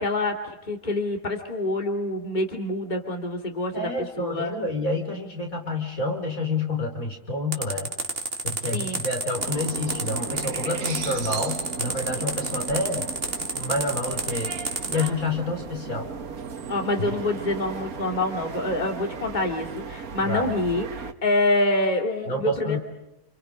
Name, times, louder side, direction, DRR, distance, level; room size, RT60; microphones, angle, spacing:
voice 1, 0.0-3.9 4.2-4.5 8.7-9.0 16.7-22.8, left 2 dB, 30° left, 3 dB, 2.9 m, -26 dB
voice 2, 3.7-7.9 8.4-13.1 13.6-14.5 14.9-16.1 17.0-17.1 20.3-20.5 22.3-22.8, left 2 dB, 70° left, 3 dB, 5.3 m, -28 dB
sound 1, 7.5-15.1, right 3 dB, 40° right, 2.7 m, -29 dB
sound 2, 9.4-21.1, right 5 dB, 80° right, 1.8 m, -36 dB
30.0 x 29.5 x 5.2 m, 0.91 s
omnidirectional pair, 1.5 m